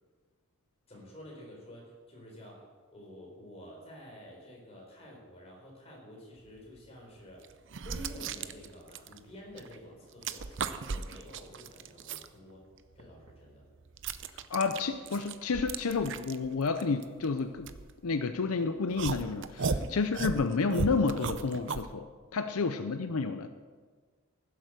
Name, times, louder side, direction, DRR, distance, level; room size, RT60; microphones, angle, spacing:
voice 1, 0.9-2.7 2.9-7.5 7.8-12.6 12.9-13.6 19.6-19.9 22.5-22.6, left 1 dB, 30° left, -2 dB, 4.3 m, -50 dB
sound 1, 6.7-6.8 7.4-9.8 10.0-12.3 12.8-18.4 19.0-21.9, right 4 dB, 60° right, 0.6 m, -36 dB
voice 2, 14.5-17.7 18.0-23.5, left 4 dB, 85° left, 9 dB, 0.6 m, -30 dB
16.0 x 7.8 x 6.7 m, 1.5 s
head